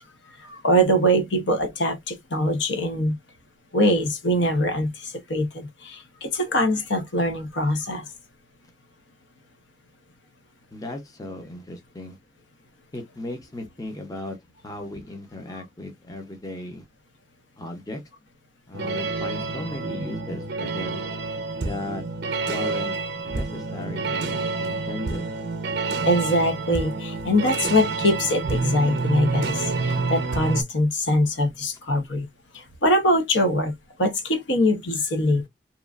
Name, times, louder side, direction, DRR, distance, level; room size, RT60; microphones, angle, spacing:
voice 1, 0.4-3.2 3.7-8.0 26.1-32.3 32.5-33.7 34.0-35.5, equal, 70° left, 0.8 m, -23 dB
voice 2, 10.7-12.2 12.9-14.4 14.6-16.9 17.6-18.0 18.7-21.0 21.6-22.0 22.4-22.9 23.3-25.3, left 1 dB, 20° left, 0.6 m, -36 dB
sound 1, 18.7-30.6, right 3 dB, 60° right, 0.6 m, -28 dB
3.0 x 2.3 x 2.3 m
head